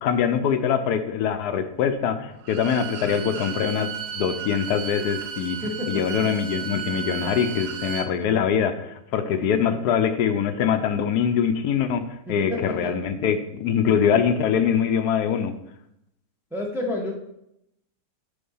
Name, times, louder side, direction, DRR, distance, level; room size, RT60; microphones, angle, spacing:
voice 1, 0.0-5.6 5.9-12.0 12.3-15.5, left 7 dB, 75° left, 9 dB, 1.1 m, -23 dB
Bowed string instrument, 2.4-8.1, right 8 dB, 75° right, 1.2 m, -34 dB
voice 2, 5.6-6.2 9.4-9.8 12.3-12.9 16.5-17.1, left 1 dB, ahead, 0 dB, 0.7 m, -30 dB
6.9 x 4.7 x 5.5 m, 0.80 s
omnidirectional pair, 1.8 m